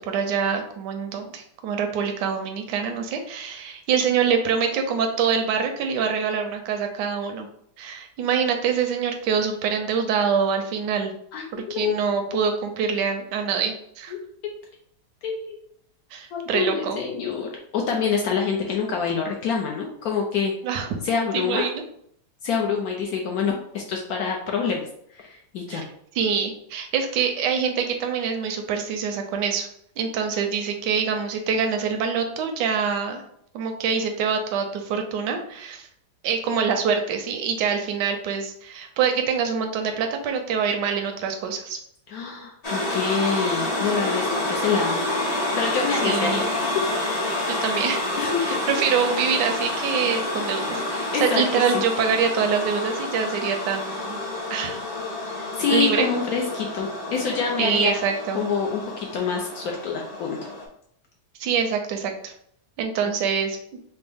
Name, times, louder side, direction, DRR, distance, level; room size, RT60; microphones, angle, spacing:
voice 1, 0.1-7.5 7.8-11.1 11.5-14.1 16.1-17.0 20.6-20.9 21.3-21.8 25.7-25.9 26.1-29.7 30.0-33.2 33.5-35.9 36.2-41.8 46.0-46.4 47.5-48.0 48.5-54.2 54.5-54.8 55.7-56.1 57.6-58.4 61.4-62.3 62.8-63.6, right 6 dB, 85° right, 5 dB, 1.2 m, -25 dB
voice 2, 11.3-12.0 14.1-14.2 15.2-15.6 16.3-20.5 21.0-21.7 22.4-24.9 25.1-25.8 42.1-45.0 45.6-46.9 47.5-47.6 48.2-48.8 51.1-51.4 55.3-58.0 58.3-60.4, left 6 dB, 70° left, 0 dB, 1.0 m, -26 dB
sound 1, 42.6-60.7, left 2 dB, 40° left, 0.5 m, -28 dB
4.3 x 2.0 x 3.4 m, 0.68 s
omnidirectional pair, 1.8 m